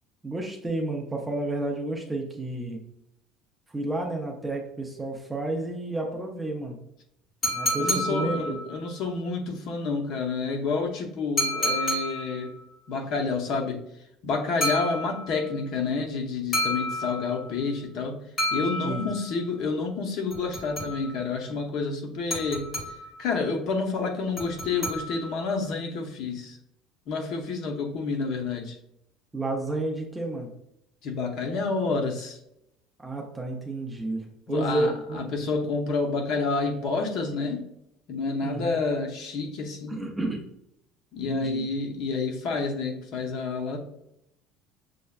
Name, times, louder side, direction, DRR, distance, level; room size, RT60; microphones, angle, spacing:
voice 1, 0.2-2.8 3.7-6.8 7.5-8.6 18.8-19.1 29.3-30.5 33.0-35.2 38.4-38.8 39.9-40.4 41.2-41.6, right 2 dB, 10° right, 1 dB, 0.5 m, -31 dB
sound 1, 7.4-8.9 11.4-12.5 14.6-15.5 16.5-17.6 18.4-19.4 20.3-21.3 22.3-23.2 24.4-25.5, equal, 20° left, 1.4 m, -30 dB
voice 2, 7.8-12.5 12.9-13.8 14.2-18.2 18.5-22.7 23.2-26.6 27.1-28.8 31.0-32.4 34.5-37.7 38.1-40.1 41.1-43.8, left 4 dB, 50° left, 2 dB, 0.7 m, -29 dB
6.4 x 2.1 x 2.3 m, 0.80 s
cardioid pair, 170°, 0 cm